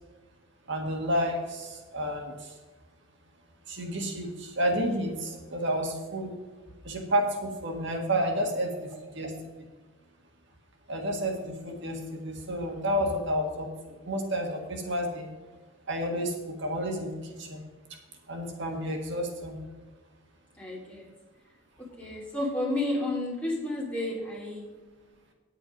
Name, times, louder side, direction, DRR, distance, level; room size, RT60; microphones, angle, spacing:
voice 1, 0.7-2.5 3.7-6.3 6.8-9.3 10.9-15.3 15.9-17.6 18.3-19.6, equal, 60° right, 3 dB, 1.6 m, -30 dB
voice 2, 20.6-21.1 22.0-24.7, left 1 dB, 5° left, -5 dB, 3.0 m, -31 dB
9.3 x 8.4 x 5.2 m, 1.3 s
head